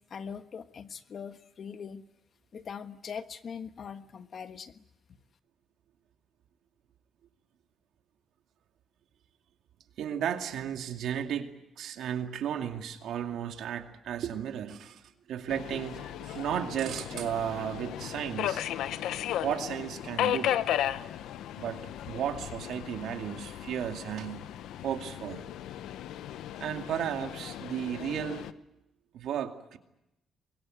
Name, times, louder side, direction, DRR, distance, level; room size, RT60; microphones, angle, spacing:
voice 1, 0.0-2.0 2.5-4.8, left 6 dB, 50° left, 10 dB, 1.4 m, -41 dB
voice 2, 10.0-18.7 19.4-20.5 21.6-24.5 24.8-25.5 26.6-28.5 29.1-29.8, right 9 dB, 75° right, 5 dB, 2.4 m, -34 dB
Subway metro underground, 15.5-28.5, left 11 dB, 85° left, 0.9 m, -35 dB
25.0 x 22.0 x 9.2 m, 0.90 s
cardioid pair, 90°, 0 cm